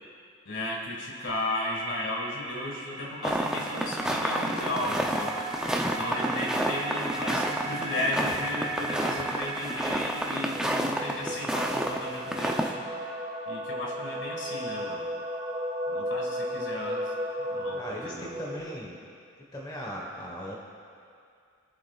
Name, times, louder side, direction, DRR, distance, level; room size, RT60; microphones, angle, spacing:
voice 1, 0.5-5.4 5.8-12.8 13.5-15.1 15.9-17.1 17.5-18.3, left 1 dB, 65° left, -2 dB, 1.9 m, -34 dB
sound 1, 1.3-18.6, right 1 dB, 25° right, 1.5 m, -36 dB
sound 2, 3.2-12.0 12.2-12.7, right 1 dB, 5° right, 0.5 m, -30 dB
voice 2, 17.7-19.0 19.5-20.6, equal, 20° left, -3 dB, 1.2 m, -38 dB
22.5 x 7.6 x 2.4 m, 2.3 s
head